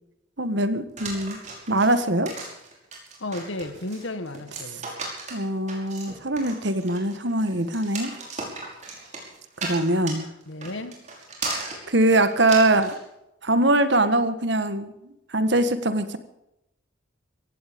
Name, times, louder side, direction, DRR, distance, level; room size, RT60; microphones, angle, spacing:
voice 1, 0.4-1.4 1.7-2.3 5.3-8.1 9.6-10.3 11.9-13.0 13.4-14.9 15.3-16.2, right 1 dB, 60° right, 1.6 m, -22 dB
sound 1, 1.0-13.0, right 3 dB, 35° right, 5.5 m, -36 dB
voice 2, 3.2-4.9 10.5-11.0, left 2 dB, 75° left, 1.5 m, -33 dB
17.0 x 16.0 x 5.3 m
head